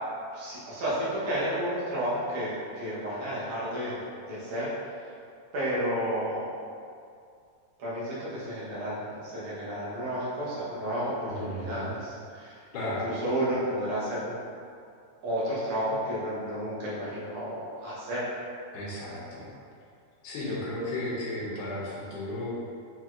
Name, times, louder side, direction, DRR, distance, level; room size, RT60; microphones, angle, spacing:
voice 1, 0.3-4.7 5.5-6.5 7.8-14.4 15.2-18.2 20.4-20.6, equal, 60° right, -9 dB, 1.6 m, -32 dB
voice 2, 11.3-12.0 12.7-13.1 18.7-19.5 20.2-22.5, left 1 dB, 90° left, -7 dB, 2.4 m, -34 dB
6.1 x 2.9 x 2.5 m, 2.3 s
omnidirectional pair, 3.4 m